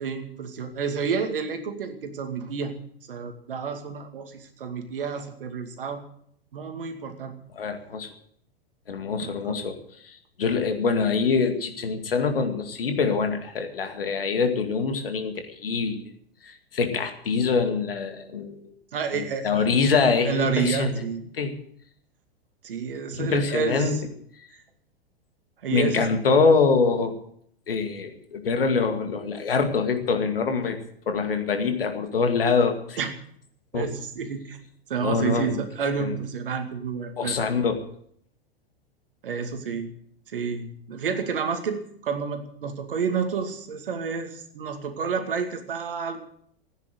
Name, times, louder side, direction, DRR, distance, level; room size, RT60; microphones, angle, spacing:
voice 1, 0.0-2.7 3.1-6.0 6.5-7.3 9.2-9.6 18.9-19.7 20.3-21.2 22.6-24.0 25.6-26.1 33.0-33.1 33.7-34.6 34.9-37.4 39.2-39.9 40.3-46.2, right 6 dB, 60° right, 6 dB, 2.4 m, -30 dB
voice 2, 7.6-8.1 8.9-9.8 10.0-16.1 16.4-18.7 19.1-21.0 21.3-21.5 23.1-24.0 25.7-27.1 27.7-30.8 31.1-33.0 33.7-33.9 35.0-35.6 36.0-36.1 37.2-37.8, left 5 dB, 65° left, 6 dB, 2.3 m, -24 dB
15.5 x 9.8 x 7.9 m, 0.67 s
figure-of-eight pair, 95°, 30 cm